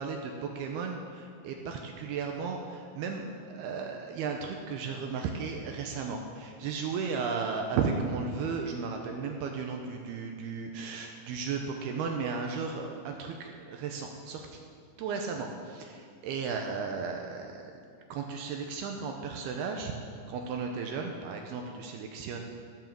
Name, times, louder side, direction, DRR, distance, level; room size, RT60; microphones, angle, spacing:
voice 1, 0.0-14.5 15.0-17.6 18.1-19.9 20.3-22.4, right 5 dB, 75° right, 3 dB, 2.5 m, -35 dB
15.0 x 7.2 x 7.5 m, 2.2 s
omnidirectional pair, 5.1 m